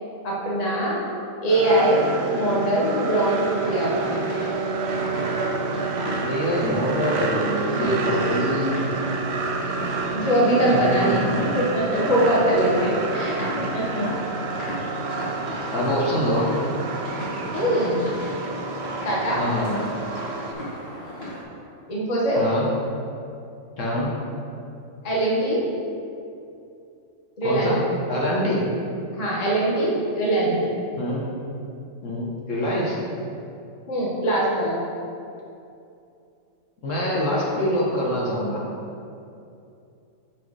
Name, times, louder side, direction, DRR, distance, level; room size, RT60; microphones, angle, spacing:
voice 1, 0.2-1.0 1.4-4.2 8.1-8.2 10.1-13.4 13.7-14.2 17.5-18.0 19.0-19.4 21.9-22.4 25.0-25.6 27.4-27.8 29.1-30.5 33.9-34.8, right 1 dB, 30° left, -5 dB, 1.0 m, -22 dB
sound 1, 1.5-20.5, right 4 dB, 60° right, 0.8 m, -29 dB
sound 2, 3.2-21.4, equal, 45° left, 1.9 m, -35 dB
voice 2, 6.2-8.8 10.6-11.4 15.7-16.5 19.4-19.8 22.4-22.6 23.8-24.1 27.4-27.8 28.1-28.6 30.4-30.6 31.0-31.2 32.0-33.0 36.8-38.6, equal, 65° left, -5 dB, 1.6 m, -25 dB
5.7 x 5.0 x 4.7 m, 2.6 s
omnidirectional pair, 1.4 m